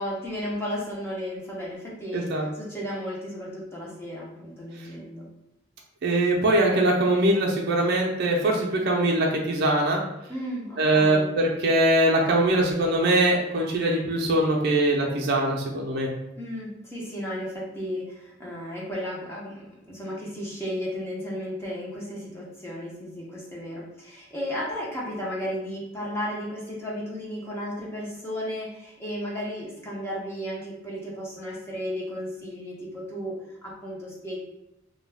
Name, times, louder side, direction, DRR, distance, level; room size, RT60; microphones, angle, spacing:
voice 1, 0.0-5.3 10.3-11.3 16.4-34.4, equal, 10° left, -5 dB, 0.6 m, -34 dB
voice 2, 2.1-2.5 6.0-10.0 10.8-16.1, right 1 dB, 55° right, -1 dB, 0.4 m, -22 dB
2.2 x 2.2 x 3.3 m, 0.88 s
head